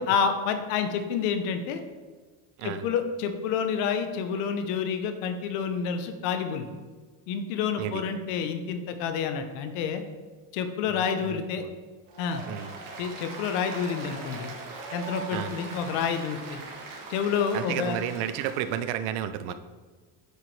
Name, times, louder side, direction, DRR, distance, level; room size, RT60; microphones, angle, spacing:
voice 1, 0.0-1.8 2.6-6.8 7.3-10.0 10.5-11.7 12.2-12.4 13.0-14.5 14.9-16.6 17.1-18.0, left 6 dB, 80° left, 8 dB, 0.9 m, -29 dB
voice 2, 10.9-11.7 12.5-12.7 15.3-15.5 17.5-19.5, right 10 dB, 80° right, 11 dB, 0.6 m, -32 dB
Applause, 12.1-18.8, right 3 dB, 55° right, 1.9 m, -40 dB
9.5 x 4.7 x 3.2 m, 1.4 s
supercardioid pair, 90°, 40 cm